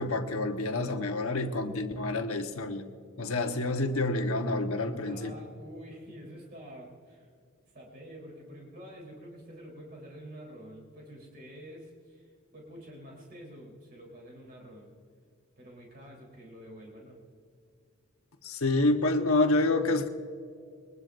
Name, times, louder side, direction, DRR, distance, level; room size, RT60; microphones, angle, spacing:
voice 1, 0.0-2.8 3.2-5.3 18.4-20.1, left 2 dB, 75° left, 5 dB, 1.2 m, -28 dB
voice 2, 5.0-7.3 7.7-14.9 15.6-17.2, equal, 50° right, -2 dB, 3.6 m, -48 dB
22.5 x 20.5 x 2.6 m, 2.2 s
head